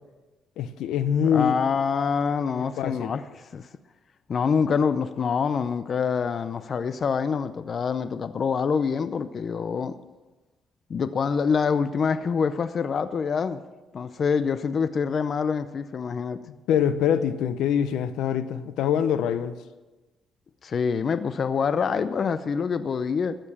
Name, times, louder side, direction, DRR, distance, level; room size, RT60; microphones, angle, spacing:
voice 1, 0.6-1.6 2.5-3.1 16.7-19.6, left 8 dB, 85° left, 12 dB, 0.8 m, -24 dB
voice 2, 1.3-3.7 4.3-10.0 10.9-13.6 13.9-16.4 20.6-23.4, left 6 dB, 50° left, 13 dB, 0.6 m, -26 dB
13.5 x 9.0 x 7.2 m, 1.2 s
cardioid pair, 90°, 0 cm